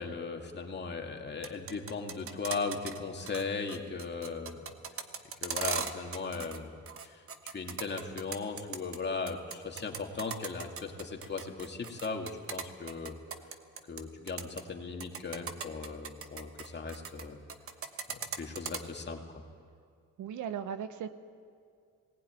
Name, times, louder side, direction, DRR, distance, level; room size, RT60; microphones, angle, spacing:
voice 1, 0.0-4.6 5.4-13.2 13.9-17.4 18.1-19.2, left 4 dB, 35° left, 2 dB, 2.4 m, -38 dB
sound 1, 1.3-3.0 3.3-3.4 3.7-6.6 6.9-9.0 9.3-14.0 14.3-14.6 15.0-17.2 17.5-18.8, right 6 dB, 45° right, 1.3 m, -38 dB
voice 2, 20.2-21.1, right 8 dB, 75° right, 11 dB, 1.1 m, -37 dB
19.0 x 15.5 x 9.3 m, 2.3 s
cardioid pair, 90°, 30 cm